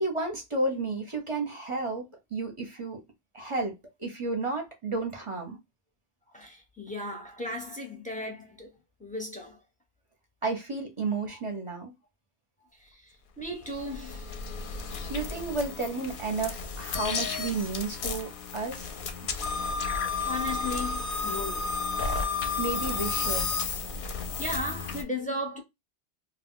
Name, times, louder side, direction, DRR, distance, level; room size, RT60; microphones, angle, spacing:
voice 1, 0.0-3.0 3.3-5.6 10.4-11.9 15.1-18.9 22.6-23.5, right 3 dB, 35° right, 0.7 m, -32 dB
voice 2, 6.3-8.7 9.0-9.6 11.3-11.4 12.8-14.3 18.2-18.3 19.9-20.0 20.2-21.7 24.4-25.6, left 1 dB, 10° left, 0.6 m, -36 dB
sound 1, 13.4-25.0, left 4 dB, 60° left, 0.6 m, -32 dB
2.3 x 2.2 x 3.6 m
omnidirectional pair, 1.2 m